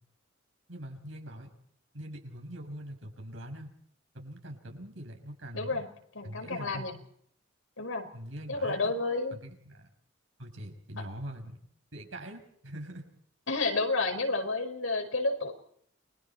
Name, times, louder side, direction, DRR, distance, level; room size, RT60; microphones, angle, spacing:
voice 1, 0.7-1.5 1.9-3.7 4.1-5.8 6.2-6.9 8.1-8.9 9.3-9.9 10.4-11.6 11.9-13.0, right 1 dB, 75° right, 3 dB, 6.5 m, -43 dB
voice 2, 5.5-5.9 6.1-7.0 7.8-8.1 8.5-9.4 13.5-15.5, left 3 dB, 90° left, 4 dB, 5.1 m, -30 dB
29.5 x 23.0 x 4.5 m, 0.68 s
head